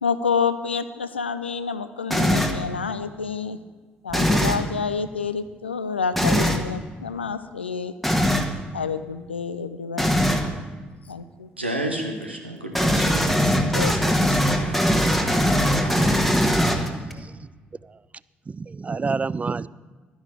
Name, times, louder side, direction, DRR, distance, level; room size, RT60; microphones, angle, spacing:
voice 1, 0.0-3.6 4.0-7.9 8.7-10.1 11.1-11.5 13.3-13.4 13.7-14.6, left 5 dB, 85° left, 12 dB, 0.3 m, -28 dB
sound 1, 2.1-2.6 4.1-4.7 6.1-6.6 8.0-8.5 10.0-10.5 12.7-17.1, equal, ahead, 1.2 m, -21 dB
voice 2, 11.6-13.5 14.4-16.2, right 1 dB, 90° right, 2 dB, 0.9 m, -33 dB
voice 3, 17.0-17.5 18.5-19.7, right 4 dB, 25° right, 19 dB, 0.3 m, -29 dB
12.0 x 10.0 x 4.9 m, 1.3 s
figure-of-eight pair, 45°, 6 cm